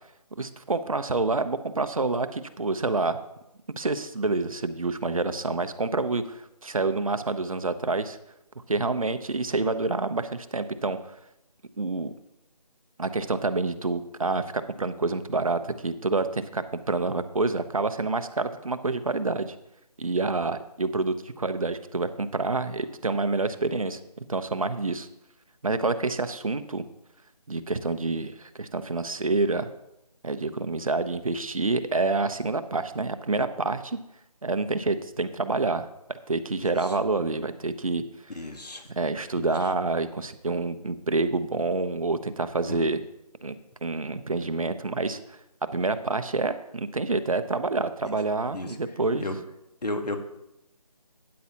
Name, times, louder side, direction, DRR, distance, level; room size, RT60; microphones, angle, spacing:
voice 1, 0.4-3.2 3.8-8.2 8.7-11.0 11.8-12.1 13.0-19.6 20.0-24.0 24.3-25.1 25.6-26.8 27.5-29.7 30.2-34.0 34.4-38.4 39.0-43.0 43.4-43.6 43.8-45.4 45.7-49.3, right 3 dB, 60° right, 10 dB, 0.7 m, -28 dB
voice 2, 38.3-38.8 39.4-39.5 42.7-42.9 48.5-48.8 49.2-49.4 49.8-50.2, left 2 dB, 85° left, 6 dB, 1.5 m, -33 dB
12.5 x 9.5 x 2.8 m, 0.87 s
figure-of-eight pair, 180°, 20 cm